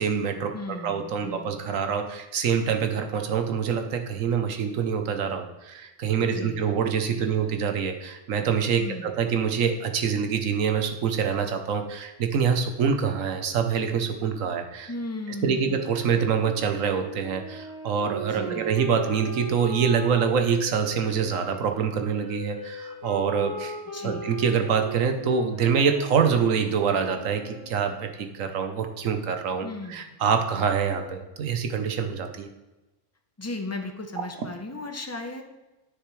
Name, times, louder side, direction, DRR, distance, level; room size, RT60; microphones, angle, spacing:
voice 1, 0.0-14.9 15.4-23.8 24.0-32.5, right 6 dB, 80° right, 6 dB, 1.2 m, -25 dB
voice 2, 0.5-1.8 6.3-7.5 8.8-9.2 14.9-15.9 18.3-18.8 23.9-24.3 29.6-30.3 33.4-35.4, left 2 dB, 15° left, 4 dB, 0.5 m, -37 dB
Wind instrument woodwind instrument, 15.6-21.5 22.2-28.1, right 2 dB, 65° left, 2.0 m, -39 dB
9.5 x 6.7 x 3.2 m, 1.0 s
omnidirectional pair, 1.3 m